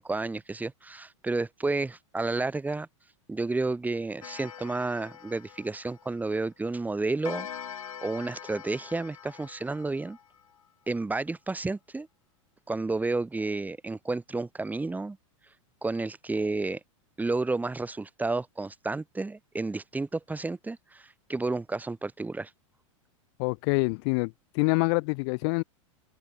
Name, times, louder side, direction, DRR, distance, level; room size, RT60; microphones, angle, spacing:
voice 1, 0.0-2.9 3.3-7.5 8.0-10.2 10.9-12.1 12.7-15.2 15.8-16.8 17.2-22.5, right 3 dB, 10° right, 5.4 m, -31 dB
Clock, 4.2-6.5 7.2-10.6, left 9 dB, 85° left, 5.6 m, -43 dB
voice 2, 23.4-25.6, left 33 dB, 55° left, 1.5 m, -26 dB
open air
hypercardioid pair, 110°, 17 cm